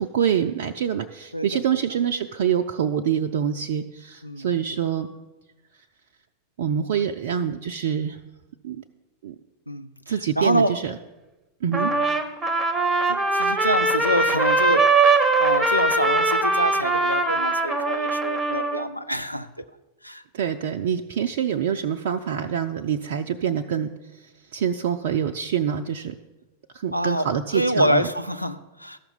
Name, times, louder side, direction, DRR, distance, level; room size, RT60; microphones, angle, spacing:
voice 1, 0.0-5.1 6.6-8.2 8.6-8.8 9.2-9.4 10.1-11.0 11.6-11.9 20.3-26.2 26.7-28.1, right 8 dB, 55° right, 5 dB, 0.4 m, -26 dB
voice 2, 9.7-10.8 11.7-12.0 13.1-19.6 20.0-20.2 26.9-27.3 27.5-29.0, equal, 90° left, 9 dB, 0.5 m, -26 dB
Trumpet, 11.7-18.9, right 3 dB, 10° right, 0.9 m, -21 dB
13.0 x 5.9 x 6.9 m, 1.1 s
figure-of-eight pair, 90°, 0 cm